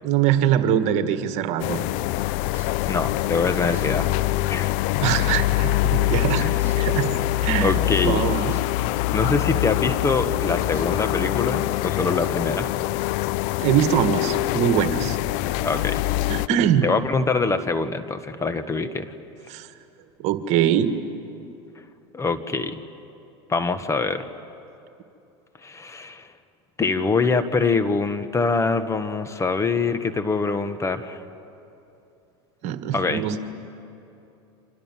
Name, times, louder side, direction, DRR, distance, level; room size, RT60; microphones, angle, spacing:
voice 1, 0.0-1.8 5.0-6.5 6.8-7.1 7.4-8.5 13.6-15.2 16.3-16.9 19.5-19.7 20.2-21.0 32.6-33.4, right 10 dB, 55° right, 9 dB, 1.8 m, -22 dB
sound 1, 1.6-16.5, left 16 dB, 60° left, 0.6 m, -24 dB
sound 2, 2.5-2.8 3.7-3.8 4.6-4.7 5.2-5.5 6.6-6.8 8.5-8.6 9.1-9.2 10.7-10.8 11.6-11.7, right 6 dB, 15° right, 7.4 m, -46 dB
voice 2, 2.8-4.1 4.5-4.7 6.4-6.6 7.6-8.2 9.1-12.7 15.6-16.0 16.8-19.1 22.1-22.7 23.5-24.3 25.6-26.3 26.8-31.2 32.9-33.3, left 4 dB, 20° left, 10 dB, 1.5 m, -24 dB
30.0 x 25.5 x 7.5 m, 2.8 s
hypercardioid pair, 95°, 14 cm